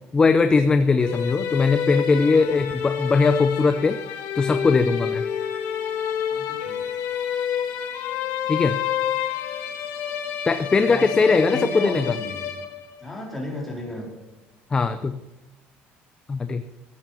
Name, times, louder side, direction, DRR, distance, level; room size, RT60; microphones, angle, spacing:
voice 1, 0.1-4.0 4.3-5.2 8.5-8.8 10.5-12.2 14.7-15.2 16.3-16.6, left 4 dB, 20° left, 10 dB, 0.6 m, -20 dB
sound 1, 1.0-13.1, left 8 dB, 75° left, 1.9 m, -28 dB
voice 2, 6.3-6.8 10.9-12.5 13.0-14.1, left 1 dB, 5° left, -3 dB, 4.3 m, -34 dB
14.0 x 9.0 x 5.6 m, 1.1 s
cardioid pair, 140°, 4 cm